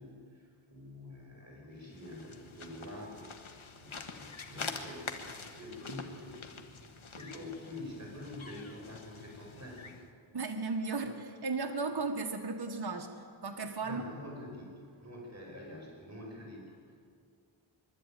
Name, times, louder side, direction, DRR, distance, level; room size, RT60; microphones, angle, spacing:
voice 1, 0.0-10.0 13.8-16.9, left 1 dB, 30° right, -3 dB, 5.5 m, -47 dB
sound 1, 1.8-10.1, left 4 dB, 75° left, 1.6 m, -46 dB
voice 2, 10.3-13.1 13.4-14.0, right 3 dB, 50° right, 3 dB, 1.5 m, -35 dB
23.5 x 12.5 x 9.1 m, 2.2 s
wide cardioid pair, 60°, 49 cm